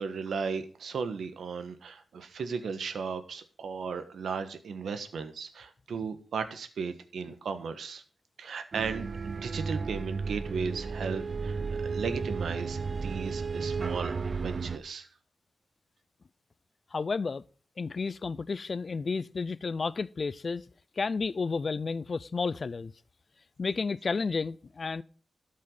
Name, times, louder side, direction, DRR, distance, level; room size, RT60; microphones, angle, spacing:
voice 1, 0.0-8.0 8.4-15.1, right 5 dB, 90° right, 1.3 m, -36 dB
sound 1, 8.7-14.8, right 4 dB, 50° right, 0.6 m, -33 dB
voice 2, 16.9-17.4 17.8-20.6 21.0-22.9 23.6-25.0, left 4 dB, 50° left, 0.5 m, -31 dB
13.0 x 5.6 x 6.6 m
wide cardioid pair, 85°, 0 cm